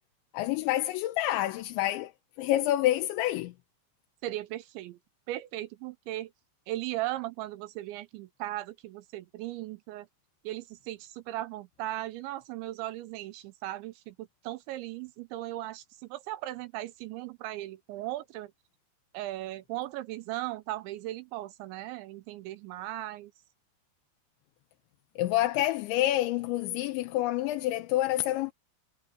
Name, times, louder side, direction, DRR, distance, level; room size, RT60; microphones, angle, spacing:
voice 1, 0.3-2.1 2.4-3.5 25.2-28.5, left 15 dB, 80° left, 3.1 m, -28 dB
voice 2, 4.2-5.0 5.3-6.3 6.7-10.1 10.4-18.5 19.1-23.3, right 15 dB, 80° right, 2.8 m, -37 dB
omnidirectional pair, 5.7 m